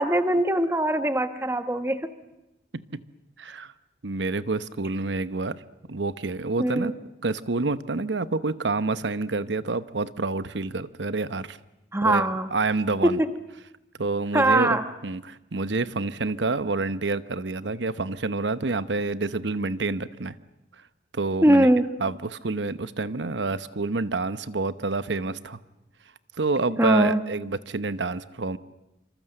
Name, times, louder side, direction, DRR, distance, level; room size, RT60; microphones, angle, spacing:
voice 1, 0.0-2.1 6.6-6.9 11.9-12.5 13.0-13.3 14.3-14.9 21.4-22.0 26.8-27.2, right 1 dB, 15° right, 9 dB, 1.2 m, -22 dB
voice 2, 3.4-3.7 4.0-5.6 5.9-6.9 7.2-11.6 12.0-13.2 14.0-20.3 21.1-21.7 22.0-25.6 26.4-28.6, right 3 dB, 85° right, 14 dB, 1.0 m, -28 dB
26.0 x 26.0 x 7.8 m, 0.93 s
head